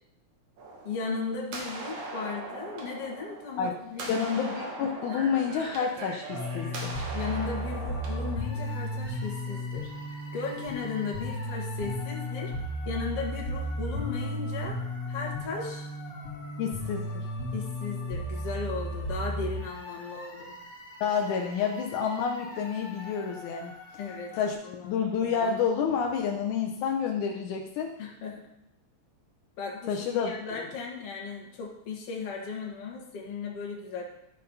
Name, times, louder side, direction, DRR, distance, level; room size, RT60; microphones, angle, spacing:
sound 1, 0.6-8.4, right 2 dB, 75° right, 2.9 m, -40 dB
voice 1, 0.8-4.3 7.1-9.9 10.3-12.5 12.9-14.8 15.1-15.9 17.5-20.6 24.0-24.3 24.6-25.0 28.0-28.5 29.6-34.0, left 5 dB, 55° left, -1 dB, 2.5 m, -36 dB
voice 2, 4.1-7.0 16.6-17.3 21.0-23.7 24.3-24.6 24.8-27.9 29.9-30.3, left 6 dB, 80° left, 1 dB, 2.2 m, -29 dB
sound 2, 6.3-24.5, equal, 35° left, 1.6 m, -35 dB
13.0 x 4.4 x 5.4 m, 0.81 s
omnidirectional pair, 3.5 m